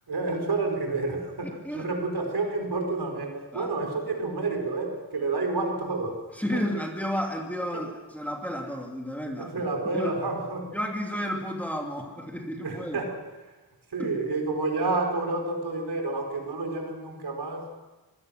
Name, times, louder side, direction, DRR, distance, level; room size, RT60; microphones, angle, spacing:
voice 1, 0.1-6.2 6.5-6.6 7.7-7.8 9.4-10.7 12.6-13.1 13.4-13.5 13.9-17.8, right 3 dB, 65° right, 3 dB, 4.5 m, -29 dB
voice 2, 1.4-1.9 3.5-3.7 6.4-9.6 9.9-10.2 10.7-13.0 14.0-14.1, equal, 5° left, 1 dB, 2.6 m, -32 dB
24.5 x 17.5 x 6.4 m, 1.2 s
wide cardioid pair, 100°, 42 cm